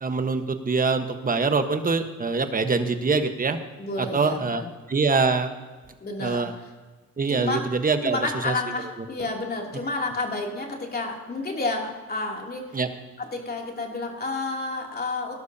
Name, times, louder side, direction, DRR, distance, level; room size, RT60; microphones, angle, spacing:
voice 1, 0.0-3.6 4.0-4.6 4.9-5.5 6.2-6.5 7.2-8.2 8.4-8.5 12.7-12.9, right 4 dB, 30° right, 7 dB, 1.3 m, -24 dB
voice 2, 3.8-4.7 6.0-6.7 7.3-7.7 8.0-12.8 13.2-15.3, left 3 dB, 30° left, 0 dB, 3.0 m, -30 dB
19.5 x 11.5 x 2.8 m, 1.3 s
cardioid pair, 90°, 30 cm